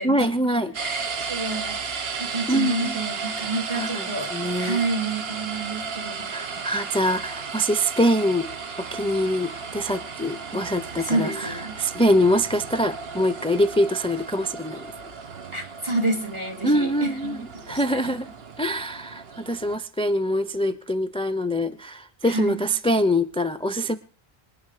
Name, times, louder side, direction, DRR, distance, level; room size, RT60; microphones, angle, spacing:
voice 1, 0.0-0.8 2.5-3.0 3.7-4.8 6.3-8.5 8.8-14.9 16.6-17.4 17.7-18.3 18.6-24.0, equal, 5° left, 10 dB, 0.5 m, -24 dB
sound 1, 0.7-19.8, right 5 dB, 75° right, 1.3 m, -34 dB
voice 2, 0.8-4.3 4.6-6.3 11.0-11.8 15.5-18.2 22.2-22.6, right 2 dB, 30° right, 4 dB, 2.9 m, -29 dB
25.5 x 10.0 x 4.9 m, 0.41 s
omnidirectional pair, 1.0 m